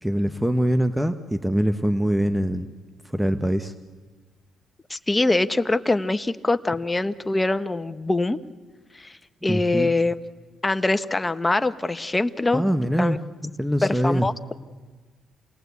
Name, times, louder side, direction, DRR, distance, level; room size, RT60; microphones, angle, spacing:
voice 1, 0.0-2.7 3.0-3.7 9.5-9.9 12.5-13.2 13.6-14.3, equal, 5° right, 9 dB, 1.1 m, -23 dB
voice 2, 4.9-8.4 8.9-10.2 10.6-12.6 13.0-13.2 13.8-14.3, left 2 dB, 15° left, 11 dB, 0.9 m, -23 dB
28.0 x 19.5 x 8.3 m, 1.4 s
cardioid pair, 90°, 0 cm